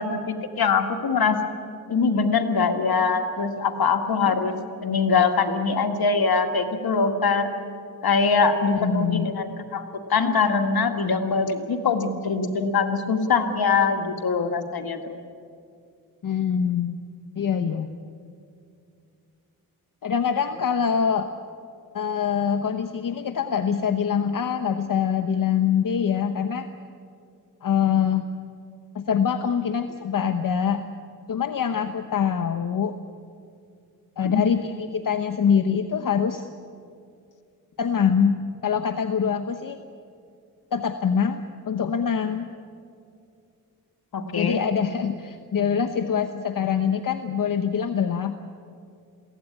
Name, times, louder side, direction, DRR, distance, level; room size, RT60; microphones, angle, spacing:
voice 1, 0.0-1.4 1.9-4.6 4.8-7.5 8.0-15.2 34.2-34.4 44.1-44.6, left 5 dB, 80° left, 5 dB, 2.0 m, -23 dB
voice 2, 8.8-9.3 16.2-17.0 17.4-17.9 20.0-21.3 21.9-26.7 27.6-28.3 28.9-30.8 31.3-33.0 34.2-36.4 37.8-39.8 40.7-42.5 44.4-48.4, left 7 dB, 60° left, 7 dB, 1.0 m, -24 dB
22.5 x 16.5 x 9.8 m, 2.4 s
cardioid pair, 70°, 37 cm